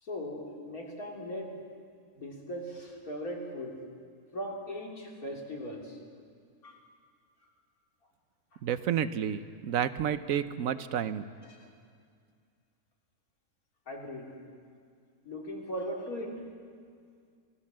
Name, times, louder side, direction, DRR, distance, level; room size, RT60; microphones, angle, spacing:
voice 1, 0.0-1.6 2.1-3.8 4.3-6.0 6.6-6.8 7.4-7.5 8.5-8.6 11.4-11.7 13.9-14.4 15.2-16.5, equal, 80° left, 0 dB, 3.4 m, -39 dB
voice 2, 8.6-11.3, right 9 dB, 70° right, 13 dB, 1.1 m, -30 dB
24.5 x 16.5 x 7.4 m, 2.2 s
omnidirectional pair, 1.5 m